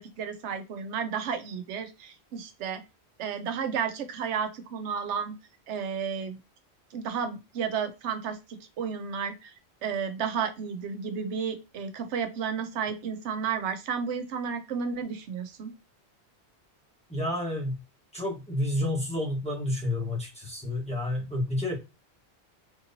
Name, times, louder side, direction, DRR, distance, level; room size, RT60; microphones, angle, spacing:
voice 1, 0.0-2.8 3.2-5.3 5.7-6.4 6.9-8.4 8.8-9.5 9.8-15.7, right 6 dB, 90° right, 9 dB, 0.9 m, -32 dB
voice 2, 17.1-17.8 18.1-21.8, left 1 dB, 5° left, -3 dB, 1.0 m, -30 dB
3.6 x 2.8 x 2.6 m, 0.26 s
omnidirectional pair, 1.1 m